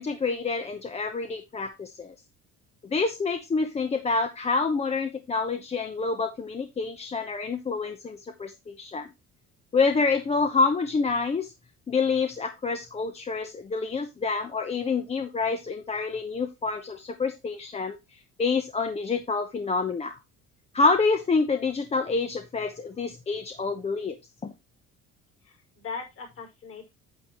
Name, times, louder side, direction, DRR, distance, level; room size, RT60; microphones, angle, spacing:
voice 1, 0.0-2.1 2.8-9.1 9.7-11.5 11.9-18.0 18.4-20.2 20.7-24.2 24.4-24.5, left 4 dB, 20° left, 7 dB, 0.8 m, -27 dB
voice 2, 25.4-26.9, left 5 dB, 45° left, 3 dB, 5.0 m, -39 dB
9.0 x 8.2 x 3.0 m, 0.22 s
cardioid pair, 145°, 29 cm